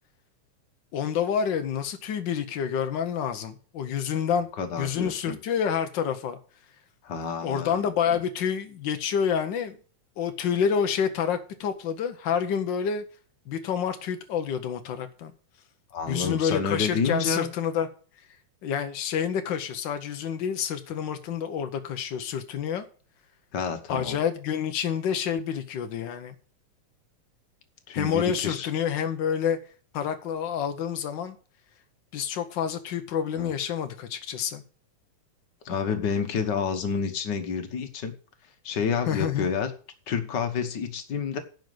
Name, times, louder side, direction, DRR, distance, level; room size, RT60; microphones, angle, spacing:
voice 1, 0.9-4.5 4.8-6.4 7.4-9.8 10.2-13.0 13.5-15.3 16.1-17.9 18.6-22.8 23.9-26.4 27.9-29.6 29.9-31.4 32.1-34.6 39.1-39.5, left 8 dB, 90° left, 1.0 m, -28 dB
voice 2, 4.6-5.4 7.0-7.8 15.9-17.5 23.5-24.2 27.9-28.7 33.4-33.5 35.6-38.1 38.6-39.7 40.1-41.4, left 6 dB, 50° left, 1.4 m, -29 dB
10.5 x 5.3 x 7.8 m
omnidirectional pair, 3.3 m